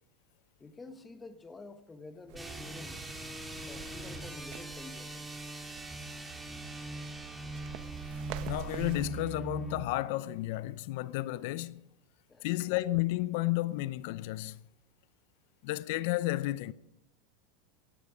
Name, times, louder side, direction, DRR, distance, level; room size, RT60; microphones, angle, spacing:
voice 1, 0.6-3.0 3.7-5.3 12.3-12.5, left 3 dB, 15° left, 1.6 m, -49 dB
sound 1, 2.3-9.9, right 2 dB, 10° right, 3.0 m, -41 dB
sound 2, 2.3-9.1, right 13 dB, 60° right, 0.9 m, -48 dB
voice 2, 8.4-11.8 12.4-14.6 15.6-16.7, left 17 dB, 65° left, 0.6 m, -32 dB
16.5 x 15.0 x 5.1 m
hypercardioid pair, 110°, 0 cm